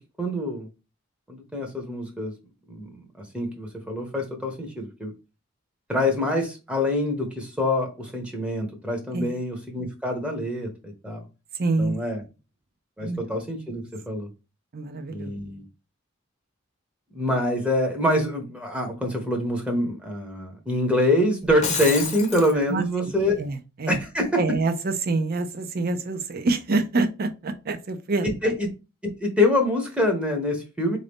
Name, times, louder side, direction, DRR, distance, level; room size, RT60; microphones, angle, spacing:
voice 1, 0.2-0.7 1.3-2.3 2.7-2.9 3.3-5.1 5.9-11.2 11.8-12.2 13.0-14.3 15.1-15.6 17.1-23.3 23.9-24.4 28.2-28.7 29.0-31.0, left 1 dB, 5° right, 0.8 m, -25 dB
voice 2, 11.6-12.0 13.0-13.2 14.7-15.3 22.7-23.1 23.4-24.0 24.4-28.5, right 3 dB, 50° right, 0.6 m, -26 dB
Shatter, 21.4-22.5, left 6 dB, 35° left, 0.7 m, -29 dB
3.8 x 2.6 x 3.5 m
head